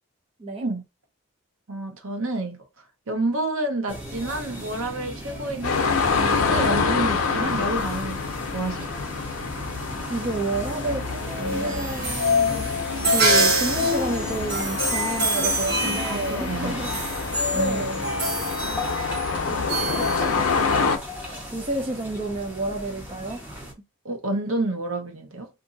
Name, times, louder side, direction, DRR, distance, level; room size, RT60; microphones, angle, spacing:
voice 1, 1.7-2.6 3.1-9.0 16.0-16.8 24.0-25.5, right 2 dB, 75° right, 0.9 m, -29 dB
sound 1, 3.9-23.7, equal, 5° right, 0.8 m, -38 dB
sound 2, 5.6-21.0, left 5 dB, 75° left, 0.6 m, -27 dB
voice 2, 10.1-12.7 13.0-17.0 17.5-18.0 18.6-18.9 19.5-20.9 21.5-23.6, right 2 dB, 25° right, 0.4 m, -31 dB
sound 3, 11.3-20.9, equal, 50° right, 1.2 m, -25 dB
2.7 x 2.6 x 3.8 m
head